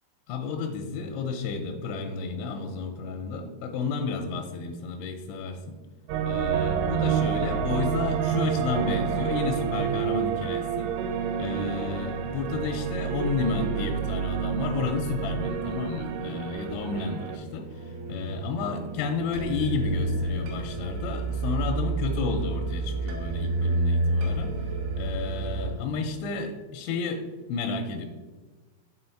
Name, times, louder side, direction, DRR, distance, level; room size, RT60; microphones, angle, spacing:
voice 1, 0.3-5.8 6.3-11.0 11.4-24.6 25.0-28.1, left 4 dB, 85° left, 4 dB, 2.7 m, -31 dB
sound 1, 6.1-17.4, right 8 dB, 90° right, 3.2 m, -29 dB
sound 2, 17.2-25.7, right 2 dB, 75° right, 2.8 m, -30 dB
6.9 x 3.9 x 4.4 m, 1.3 s
omnidirectional pair, 5.6 m